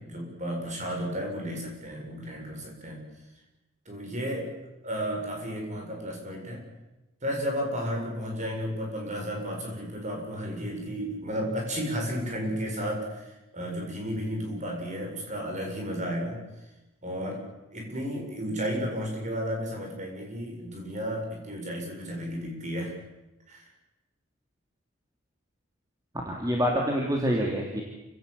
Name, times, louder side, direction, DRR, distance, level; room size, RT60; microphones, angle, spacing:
voice 1, 0.0-3.0 3.9-4.5 4.8-6.6 7.2-16.4 17.0-17.4 17.7-22.9 23.5-23.7, equal, 35° right, 0 dB, 7.6 m, -33 dB
voice 2, 26.2-27.8, equal, 15° right, -1 dB, 3.1 m, -26 dB
28.5 x 17.5 x 8.5 m, 1.0 s
head